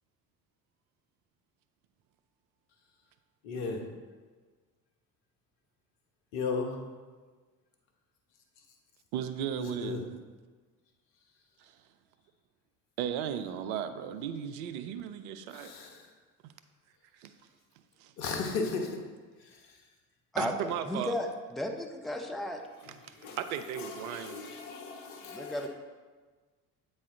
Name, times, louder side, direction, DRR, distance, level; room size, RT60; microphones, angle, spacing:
voice 1, 3.4-3.8 6.3-6.8 9.6-10.0 15.5-16.0 18.2-19.0 19.4-19.5 23.1-23.4 23.8-25.7, left 4 dB, 65° left, 2 dB, 1.2 m, -35 dB
voice 2, 9.1-10.1 11.6-11.8 13.0-15.7 16.4-16.5 17.1-17.3 18.0-18.1 20.4-21.1 23.4-24.4, right 9 dB, 65° right, 10 dB, 0.6 m, -35 dB
voice 3, 20.9-22.6 25.3-25.7, left 1 dB, ahead, 2 dB, 0.7 m, -34 dB
8.4 x 4.2 x 3.8 m, 1.4 s
hypercardioid pair, 60°, 46 cm